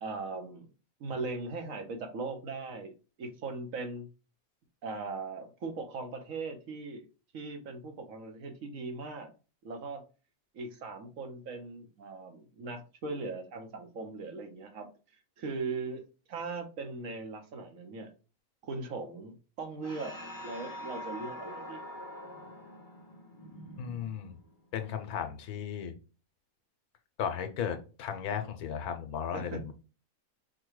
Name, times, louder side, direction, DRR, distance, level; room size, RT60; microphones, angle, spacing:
voice 1, 0.0-0.7 1.0-4.1 4.8-7.1 7.3-9.3 9.6-10.0 10.5-16.0 16.3-18.1 18.6-20.2 20.4-21.8 29.3-29.7, right 3 dB, 65° right, 6 dB, 1.2 m, -39 dB
sound 1, 19.8-24.6, equal, 20° left, 0.6 m, -44 dB
voice 2, 23.8-24.3 24.7-25.9 27.2-29.7, left 8 dB, 85° left, 7 dB, 1.2 m, -35 dB
4.8 x 2.2 x 4.6 m, 0.33 s
omnidirectional pair, 1.6 m